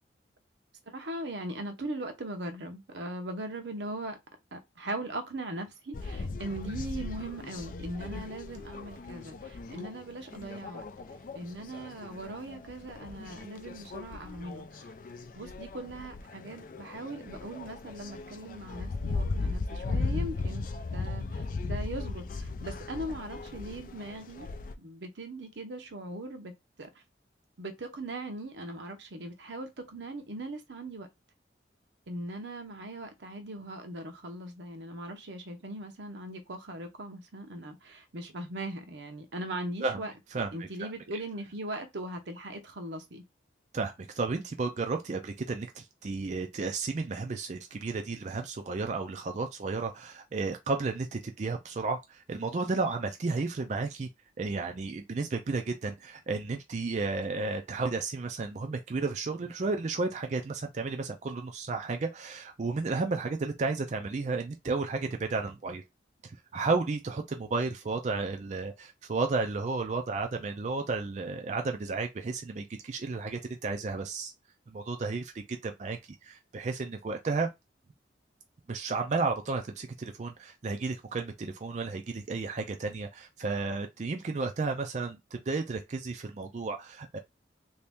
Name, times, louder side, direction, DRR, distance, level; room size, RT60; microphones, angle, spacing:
voice 1, 0.9-4.2 4.5-10.8 11.3-14.9 15.4-24.5 24.8-26.5 26.8-26.9 27.6-31.1 32.1-40.1 40.5-43.2, right 1 dB, 80° right, 0.8 m, -39 dB
sound 1, 5.9-24.7, left 3 dB, 50° left, 0.4 m, -37 dB
voice 2, 40.3-40.9 43.7-54.1 54.4-65.8 66.2-74.3 74.7-77.5 78.7-87.2, right 3 dB, 40° right, 0.4 m, -33 dB
3.1 x 2.8 x 3.5 m
head